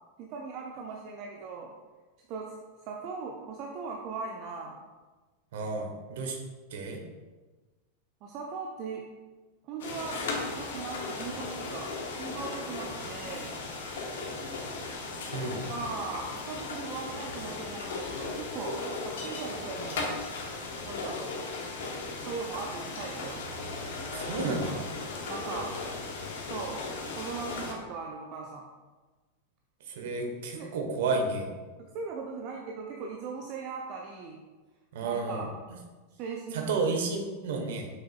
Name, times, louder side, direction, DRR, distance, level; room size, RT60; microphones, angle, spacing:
voice 1, 0.2-1.7 2.3-4.8 8.2-9.1 9.6-10.2 10.6-11.9 12.2-13.6 15.7-18.8 19.0-20.0 20.8-21.2 22.2-23.5 25.2-25.7 26.4-26.8 27.1-28.7 30.6-30.7 31.8-34.4 35.0-35.5 36.2-36.8, right 5 dB, 40° right, 0 dB, 0.7 m, -39 dB
voice 2, 5.5-6.4 6.7-7.0 15.3-15.6 24.1-24.9 29.9-31.5 34.9-35.4 36.5-37.9, right 3 dB, 55° right, 3 dB, 1.2 m, -31 dB
sound 1, 9.8-27.7, left 3 dB, 60° left, 1.1 m, -37 dB
7.4 x 6.4 x 2.4 m, 1.3 s
figure-of-eight pair, 90°, 0 cm